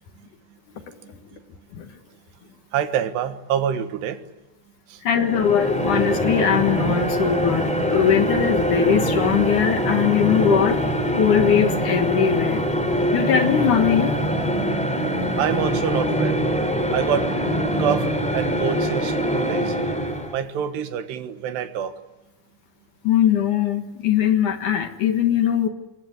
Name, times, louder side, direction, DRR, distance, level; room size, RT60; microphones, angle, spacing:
voice 1, 0.9-1.2 1.7-1.9 5.0-10.8 11.1-12.6 13.1-14.2 23.0-25.7, left 9 dB, 60° left, 7 dB, 2.6 m, -20 dB
voice 2, 2.7-4.2 4.9-5.0 15.4-16.4 16.9-17.3 17.8-18.1 18.3-19.8 20.3-22.0, right 9 dB, 85° right, 9 dB, 3.6 m, -26 dB
sound 1, 5.1-20.4, equal, ahead, 2.2 m, -23 dB
26.5 x 22.0 x 9.7 m, 1.0 s
omnidirectional pair, 4.8 m